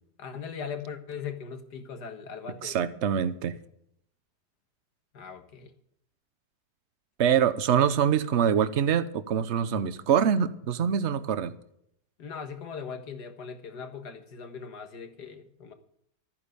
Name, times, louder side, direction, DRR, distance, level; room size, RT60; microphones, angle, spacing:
voice 1, 0.2-2.8 5.1-5.7 12.2-15.7, left 6 dB, 70° left, 7 dB, 2.1 m, -39 dB
voice 2, 2.6-3.6 7.2-11.6, right 8 dB, 50° right, 13 dB, 1.0 m, -24 dB
13.5 x 9.7 x 6.8 m, 0.73 s
omnidirectional pair, 1.9 m